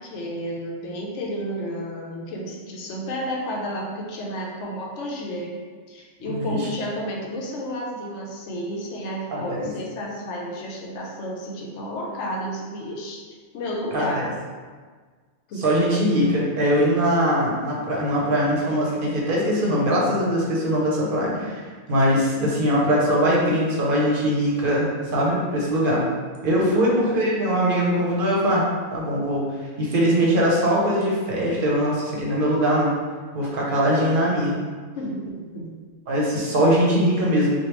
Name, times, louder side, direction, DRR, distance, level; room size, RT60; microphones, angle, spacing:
voice 1, 0.0-5.6 5.9-14.3 15.5-15.6 16.0-16.1 26.7-27.0 34.9-35.7, equal, 80° left, -1 dB, 0.9 m, -31 dB
voice 2, 6.2-6.7 9.3-9.7 13.9-14.2 15.6-21.6 21.9-24.9 25.1-26.0 26.4-28.6 28.9-29.5 29.8-32.9 33.3-34.5 36.1-37.6, equal, 50° right, -4 dB, 0.8 m, -21 dB
3.2 x 2.3 x 3.0 m, 1.5 s
omnidirectional pair, 1.2 m